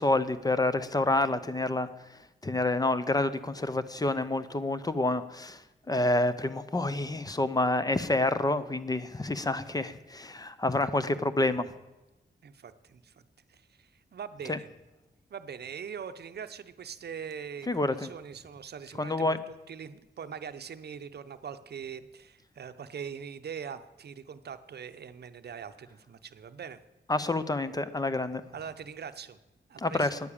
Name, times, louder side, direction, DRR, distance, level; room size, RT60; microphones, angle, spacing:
voice 1, 0.0-11.6 14.5-14.6 17.7-18.1 19.0-19.4 27.1-28.4 29.8-30.2, left 2 dB, 20° left, 13 dB, 0.6 m, -28 dB
voice 2, 12.4-13.2 13.5-14.7 15.3-26.8 28.5-29.4 29.7-30.1, right 7 dB, 65° right, 11 dB, 0.7 m, -42 dB
9.8 x 9.7 x 8.6 m, 1.0 s
wide cardioid pair, 130°, 18 cm